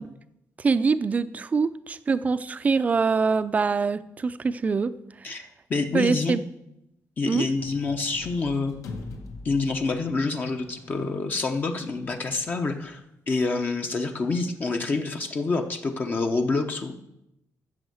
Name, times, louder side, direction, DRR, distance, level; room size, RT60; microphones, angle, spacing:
voice 1, 0.6-4.9 5.9-6.4 7.2-7.5, right 4 dB, 25° right, 13 dB, 0.5 m, -24 dB
voice 2, 5.2-6.4 7.2-8.7 9.4-16.9, left 3 dB, 30° left, 5 dB, 0.8 m, -27 dB
sound 1, 7.6-13.0, left 3 dB, 70° left, 1.6 m, -44 dB
13.5 x 6.5 x 7.9 m, 0.84 s
wide cardioid pair, 175°, 6 cm